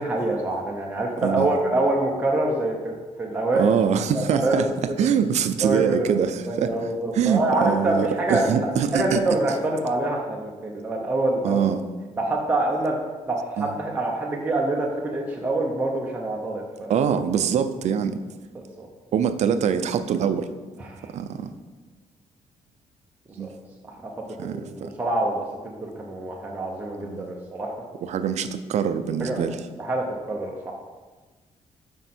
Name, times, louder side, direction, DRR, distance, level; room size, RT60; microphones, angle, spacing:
voice 1, 0.0-2.9 3.2-3.7 4.1-4.6 5.6-6.1 6.5-11.6 12.2-13.0 13.3-16.9 18.5-18.9 20.8-21.1 23.3-23.5 24.0-24.1 24.4-27.7 29.2-29.4 29.8-30.7, right 2 dB, 10° right, -2 dB, 0.7 m, -26 dB
voice 2, 1.2-1.6 3.5-4.7 5.0-6.8 7.1-9.2 11.4-11.8 13.6-13.7 16.9-18.2 19.1-20.5 21.1-21.5 23.4-23.5 24.4-24.9 27.0-27.3 28.0-29.6, right 8 dB, 60° right, 10 dB, 0.5 m, -24 dB
7.9 x 5.1 x 4.3 m, 1.3 s
cardioid pair, 170°, 13 cm